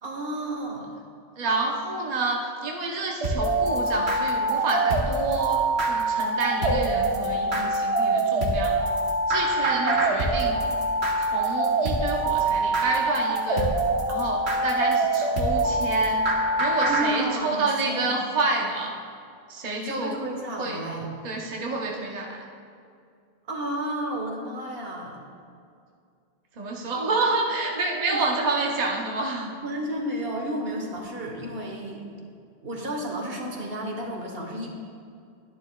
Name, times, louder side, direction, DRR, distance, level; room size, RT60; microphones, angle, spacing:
voice 1, 0.0-0.9 16.9-18.1 19.8-21.1 23.5-25.2 28.1-28.3 29.6-32.0 32.6-34.7, right 1 dB, 65° right, 1 dB, 1.4 m, -32 dB
voice 2, 1.4-8.9 9.3-10.6 11.2-13.8 14.1-16.3 16.6-18.9 19.5-20.2 20.6-20.8 21.2-22.4 26.6-29.5, right 3 dB, 45° right, -1 dB, 0.8 m, -29 dB
sound 1, 3.2-17.1, right 2 dB, 85° right, 1.4 m, -24 dB
11.5 x 10.5 x 2.3 m, 2.3 s
omnidirectional pair, 1.1 m